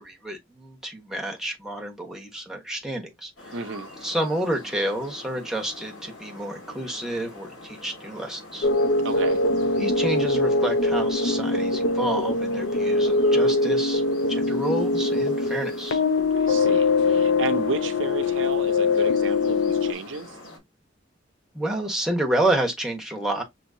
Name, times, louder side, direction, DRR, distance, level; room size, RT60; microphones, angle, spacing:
voice 1, 0.0-3.5 4.0-8.7 9.8-14.0 14.3-16.0 21.5-23.4, right 1 dB, 5° right, 1.2 m, -29 dB
sound 1, 3.4-20.6, left 2 dB, 65° left, 3.3 m, -45 dB
voice 2, 3.5-3.9 9.0-9.4 16.3-20.4, right 4 dB, 70° right, 0.6 m, -32 dB
sound 2, 8.6-19.9, left 3 dB, 85° left, 0.6 m, -22 dB
6.2 x 2.9 x 2.7 m
head